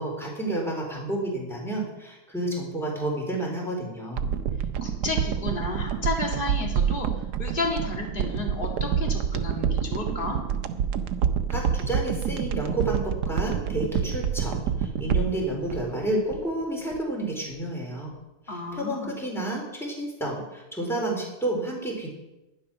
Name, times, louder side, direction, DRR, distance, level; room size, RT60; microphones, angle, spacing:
voice 1, 0.0-4.2 11.5-18.1 18.5-22.1, right 1 dB, ahead, -2 dB, 3.7 m, -30 dB
sound 1, 4.2-16.6 16.9-17.0, right 8 dB, 80° right, 1.3 m, -27 dB
voice 2, 4.8-7.1 7.4-10.4 18.5-19.2, left 2 dB, 30° left, 0 dB, 2.5 m, -32 dB
11.5 x 10.5 x 5.9 m, 0.99 s
omnidirectional pair, 1.8 m